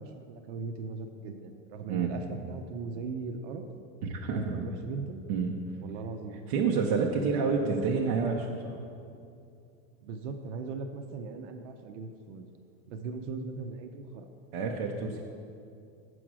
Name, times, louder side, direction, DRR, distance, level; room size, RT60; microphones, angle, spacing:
voice 1, 0.0-3.7 4.2-5.3 5.8-6.4 7.0-8.1 10.0-12.5 12.9-14.3, right 4 dB, 70° right, 5 dB, 0.7 m, -39 dB
voice 2, 4.0-4.7 5.3-5.5 6.5-8.3 8.6-8.8 14.5-15.2, right 5 dB, 30° right, 0 dB, 0.4 m, -28 dB
7.8 x 6.2 x 6.0 m, 2.5 s
supercardioid pair, 175°, 38 cm